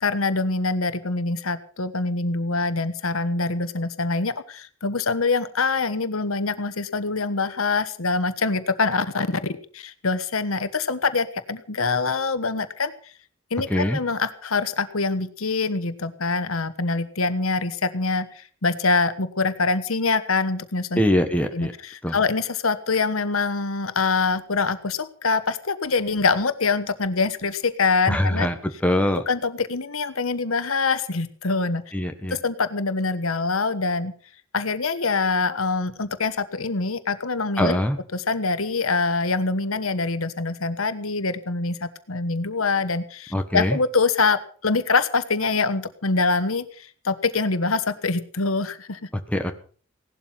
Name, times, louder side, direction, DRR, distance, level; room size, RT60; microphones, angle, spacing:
voice 1, 0.0-12.9 13.5-21.0 21.5-21.7 22.1-28.5 29.1-31.8 32.3-34.1 34.5-37.8 38.1-49.0, left 4 dB, 80° left, 12 dB, 1.3 m, -24 dB
voice 2, 13.7-14.0 21.0-21.7 22.0-22.2 28.1-28.5 28.8-29.2 31.9-32.4 37.6-38.0 43.3-43.8 49.3-49.5, left 1 dB, 5° left, 5 dB, 1.4 m, -22 dB
17.5 x 12.0 x 5.8 m, 0.43 s
head